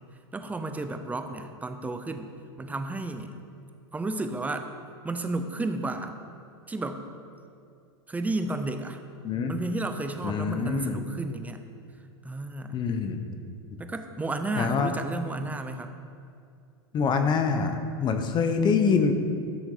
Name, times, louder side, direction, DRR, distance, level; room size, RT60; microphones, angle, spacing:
voice 1, 0.3-2.3 2.6-3.3 3.9-4.7 5.0-6.2 6.7-7.1 8.1-9.0 9.5-11.6 12.2-12.8 13.8-16.0, right 2 dB, 10° right, 7 dB, 0.7 m, -32 dB
voice 2, 10.2-11.0 12.7-13.4 14.6-14.9 16.9-19.1, left 5 dB, 30° left, 7 dB, 1.0 m, -25 dB
12.5 x 6.4 x 5.0 m, 2.4 s
hypercardioid pair, 120°, 14 cm